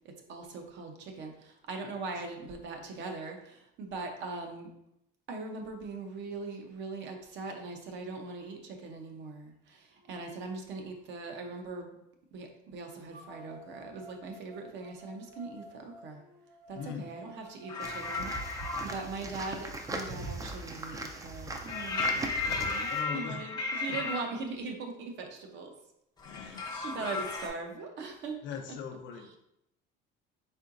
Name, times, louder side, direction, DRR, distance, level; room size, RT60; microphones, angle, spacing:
voice 1, 0.0-4.7 5.3-11.9 12.3-16.2 16.7-25.7 26.3-28.8 29.1-29.4, right 3 dB, 60° right, 3 dB, 0.7 m, -41 dB
sound 1, 9.3-9.4 10.0-11.9 13.1-19.1, right 2 dB, 85° right, 1.1 m, -53 dB
voice 2, 16.7-17.1 22.9-23.5 23.9-24.0 26.2-27.2 28.4-29.4, left 7 dB, 60° left, 6 dB, 0.5 m, -41 dB
sound 2, 17.7-18.9 21.7-24.2 26.2-27.5, left 4 dB, 20° left, 0.7 m, -34 dB
sound 3, 17.8-23.0, right 2 dB, 15° right, 0.4 m, -39 dB
4.3 x 3.7 x 2.5 m, 0.82 s
cardioid pair, 135°, 21 cm